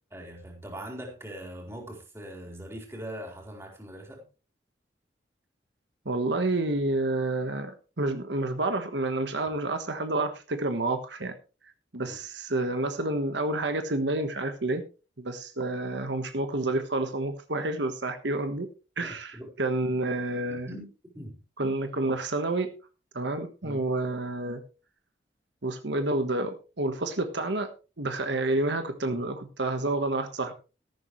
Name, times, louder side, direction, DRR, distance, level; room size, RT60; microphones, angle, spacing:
voice 1, 0.1-4.2 12.1-12.2 19.0-19.5 20.5-20.9 21.1-21.4 23.6-23.8, right 1 dB, 15° right, 0 dB, 4.3 m, -41 dB
voice 2, 6.0-11.3 11.9-14.8 15.2-18.7 19.0-20.7 21.6-22.7 23.1-24.6 25.6-27.7 28.0-30.5, right 2 dB, 75° right, 7 dB, 1.4 m, -29 dB
14.0 x 12.5 x 3.2 m, 0.34 s
head